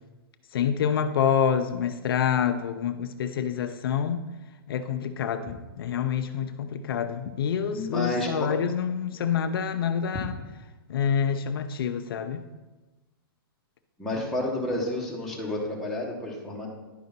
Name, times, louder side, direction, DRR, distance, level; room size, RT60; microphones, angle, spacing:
voice 1, 0.5-4.2 4.7-10.3 10.9-12.4, left 8 dB, 70° left, 8 dB, 0.6 m, -27 dB
voice 2, 7.7-8.5 14.0-16.7, left 1 dB, ahead, -5 dB, 1.5 m, -30 dB
10.5 x 5.2 x 4.1 m, 1.1 s
hypercardioid pair, 150°, 13 cm